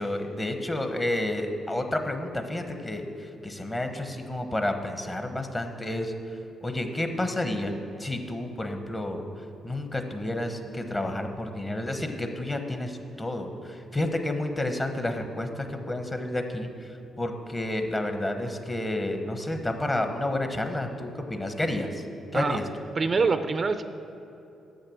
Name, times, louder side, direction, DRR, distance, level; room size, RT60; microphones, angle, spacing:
voice 1, 0.0-6.1 6.6-9.2 9.6-16.9 17.2-22.0 22.3-22.6, left 1 dB, 20° left, 6 dB, 1.0 m, -30 dB
voice 2, 23.0-23.8, right 4 dB, 40° right, 10 dB, 0.4 m, -25 dB
8.0 x 6.5 x 7.1 m, 2.8 s
cardioid pair, 85°, 0 cm